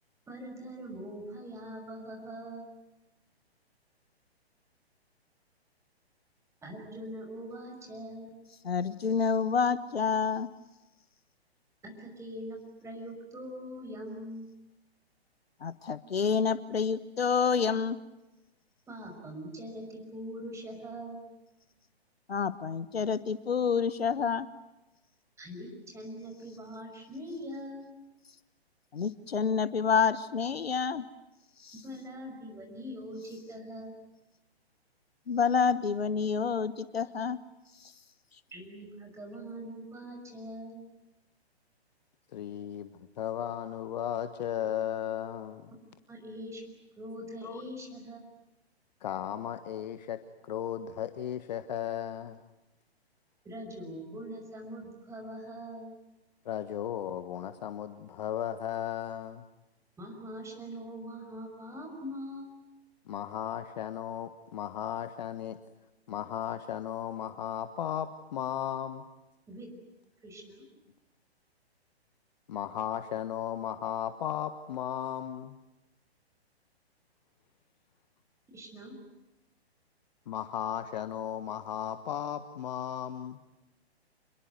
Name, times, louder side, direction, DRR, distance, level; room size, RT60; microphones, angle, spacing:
voice 1, 0.3-2.7 6.6-8.4 11.8-14.5 18.9-21.3 25.4-27.9 31.8-33.9 38.5-40.9 46.1-46.7 47.0-48.3 53.4-55.9 60.0-62.6 69.5-69.7 70.2-70.7 78.5-79.0, equal, 10° right, 3 dB, 5.9 m, -42 dB
voice 2, 8.6-10.5 15.6-18.0 22.3-24.5 28.9-31.1 31.6-31.7 35.3-37.4, left 6 dB, 65° left, 15 dB, 1.3 m, -28 dB
voice 3, 42.3-45.7 47.4-47.6 49.0-52.4 56.4-59.4 63.1-65.6 66.1-69.1 72.5-75.6 80.3-83.4, left 10 dB, 40° left, 11 dB, 1.4 m, -35 dB
27.5 x 22.0 x 9.5 m, 0.96 s
figure-of-eight pair, 125°, 32 cm